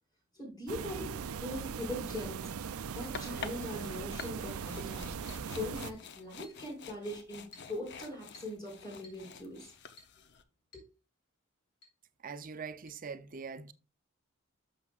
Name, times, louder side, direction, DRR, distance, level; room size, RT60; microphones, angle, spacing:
voice 1, 0.3-5.1 5.5-9.7 10.7-10.8, left 1 dB, 20° left, 5.3 m, -41 dB
sound 1, 0.7-5.9, right 6 dB, 85° right, 0.5 m, -40 dB
sound 2, 2.9-10.4, left 5 dB, 55° left, 0.7 m, -48 dB
Chink clink, 3.1-3.4 4.2-4.5 5.3-5.5 6.4-6.6 7.5-7.8 8.3-8.6 9.0-9.3 10.0-10.2 10.7-10.9 11.2-11.3 11.8-12.0 12.9-13.0, left 2 dB, 70° left, 4.1 m, -56 dB
voice 2, 12.2-13.7, right 5 dB, 40° right, 0.6 m, -42 dB
12.0 x 6.6 x 2.4 m
head